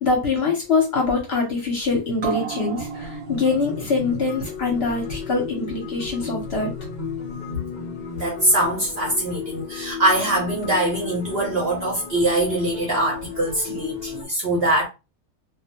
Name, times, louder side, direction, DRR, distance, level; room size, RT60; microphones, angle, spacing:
voice 1, 0.0-6.7, left 4 dB, 55° left, 0.8 m, -23 dB
sound 1, 2.2-9.1 9.4-9.5, right 2 dB, 90° right, 1.2 m, -35 dB
sound 2, 2.9-14.3, left 7 dB, 90° left, 0.4 m, -35 dB
voice 2, 8.2-14.9, right 1 dB, 55° right, 0.7 m, -22 dB
2.3 x 2.1 x 2.8 m
omnidirectional pair, 1.6 m